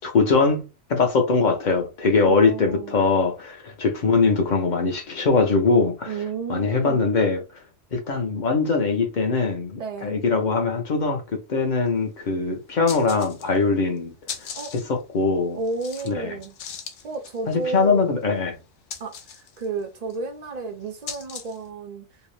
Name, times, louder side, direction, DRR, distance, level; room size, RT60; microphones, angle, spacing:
voice 1, 0.0-6.1 6.5-7.4 7.9-14.1 14.4-14.5 14.9-15.6 16.1-16.3 17.5-18.6, left 4 dB, 50° left, 0.6 m, -22 dB
voice 2, 2.2-3.0 6.1-7.1 9.8-10.3 14.6-14.7 15.5-16.5 17.0-18.1 19.0-22.1, right 4 dB, 75° right, 0.3 m, -32 dB
sound 1, 11.9-12.0 12.2-12.3 12.7-13.7 14.0-21.7, left 7 dB, 70° left, 0.9 m, -40 dB
2.7 x 2.0 x 3.0 m
omnidirectional pair, 1.3 m